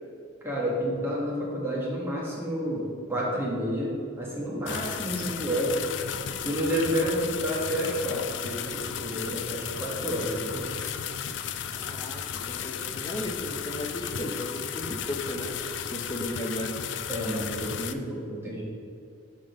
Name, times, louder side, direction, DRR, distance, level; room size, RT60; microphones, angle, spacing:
voice 1, 0.4-5.8 6.4-10.7 17.1-18.6, equal, 10° right, -5 dB, 1.4 m, -30 dB
sound 1, 4.7-17.9, left 8 dB, 65° left, 0.4 m, -34 dB
voice 2, 11.7-16.8, left 1 dB, 20° left, 2 dB, 0.7 m, -35 dB
5.7 x 5.0 x 5.3 m, 2.3 s
head